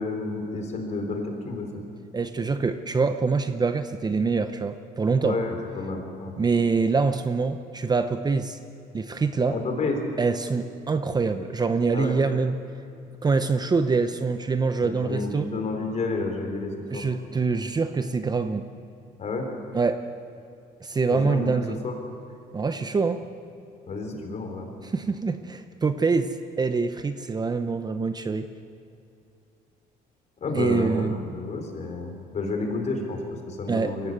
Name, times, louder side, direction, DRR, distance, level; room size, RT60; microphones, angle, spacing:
voice 1, 0.0-1.7 5.2-6.3 9.5-10.0 11.9-12.2 14.8-17.0 19.2-19.5 21.1-22.0 23.9-24.7 30.4-34.1, left 3 dB, 45° left, 3 dB, 4.4 m, -30 dB
voice 2, 2.1-5.4 6.4-8.6 8.9-9.6 10.2-12.6 13.2-15.5 16.9-18.7 19.7-20.0 20.8-21.8 22.5-23.2 24.1-24.2 24.8-28.5 30.5-31.2 33.7-34.0, right 4 dB, 25° right, 9 dB, 0.8 m, -25 dB
22.0 x 16.5 x 8.1 m, 2.5 s
cardioid pair, 110°, 17 cm